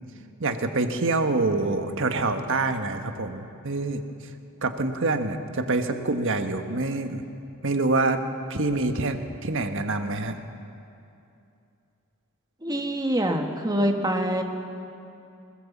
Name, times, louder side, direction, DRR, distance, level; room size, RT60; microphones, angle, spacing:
voice 1, 0.4-4.0 4.6-7.2 7.6-8.2 8.5-10.3, right 3 dB, 60° right, 6 dB, 1.4 m, -26 dB
voice 2, 12.6-14.4, right 1 dB, 20° right, 3 dB, 1.6 m, -25 dB
20.5 x 20.5 x 7.3 m, 2.6 s
head